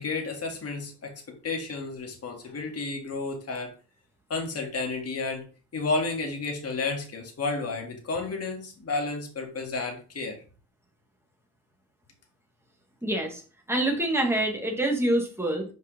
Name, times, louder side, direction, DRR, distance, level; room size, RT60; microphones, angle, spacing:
voice 1, 0.0-3.7 4.3-5.5 5.7-10.4, left 3 dB, 40° left, 2 dB, 2.0 m, -32 dB
voice 2, 13.0-13.4 13.7-15.6, right 1 dB, 5° right, 1 dB, 1.9 m, -26 dB
5.3 x 5.1 x 3.7 m, 0.36 s
cardioid pair, 100°, 38 cm